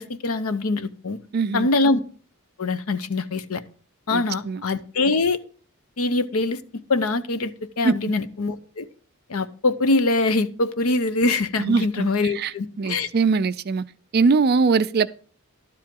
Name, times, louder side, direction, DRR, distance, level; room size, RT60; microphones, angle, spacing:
voice 1, 0.0-1.2 1.5-2.0 2.6-3.6 4.1-5.4 6.0-6.6 6.9-8.9 9.3-13.1, left 3 dB, 70° left, 0.7 m, -23 dB
voice 2, 1.3-1.7 4.1-4.6 7.8-7.9 11.6-12.1 12.3-12.5 12.8-13.8 14.1-15.1, right 4 dB, 45° right, 0.4 m, -21 dB
12.0 x 7.6 x 3.7 m
head